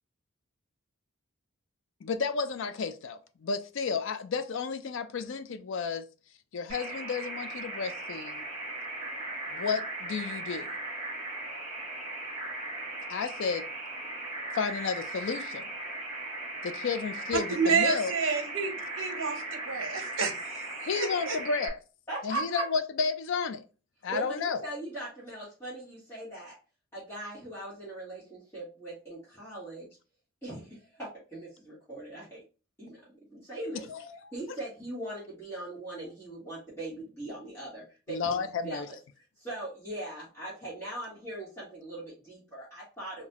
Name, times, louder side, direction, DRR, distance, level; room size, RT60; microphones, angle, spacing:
voice 1, 2.0-6.0 6.5-8.5 9.5-10.7 13.1-13.7 14.5-15.7 16.6-18.1 20.8-21.8 22.2-23.6 24.0-24.6 33.7-34.2 38.1-38.9, left 5 dB, 60° left, 0.4 m, -32 dB
sound 1, 6.7-21.7, right 2 dB, 30° right, 1.8 m, -38 dB
voice 2, 17.5-20.6 21.0-21.4, right 5 dB, 65° right, 0.8 m, -29 dB
voice 3, 22.1-22.6 24.1-26.6 26.9-30.0 30.4-32.4 32.8-33.9 34.3-39.0 39.4-43.3, right 2 dB, 10° left, 1.2 m, -40 dB
3.9 x 2.2 x 2.8 m
head